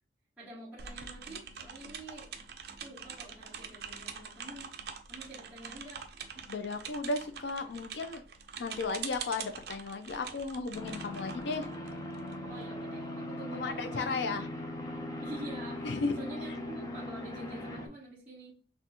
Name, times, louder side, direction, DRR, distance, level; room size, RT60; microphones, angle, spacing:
voice 1, 0.4-2.3 2.8-4.7 5.1-6.0 12.5-14.6 15.2-18.5, right 1 dB, 10° right, -10 dB, 1.5 m, -47 dB
sound 1, 0.8-12.3, right 6 dB, 60° right, 0.5 m, -44 dB
voice 2, 6.5-8.2 8.6-11.7 13.5-14.5 15.8-16.2 16.5-16.6, left 3 dB, 75° left, 7 dB, 0.4 m, -35 dB
sound 2, 10.7-17.9, left 1 dB, 20° left, 0.6 m, -39 dB
5.9 x 2.3 x 2.8 m, 0.39 s
head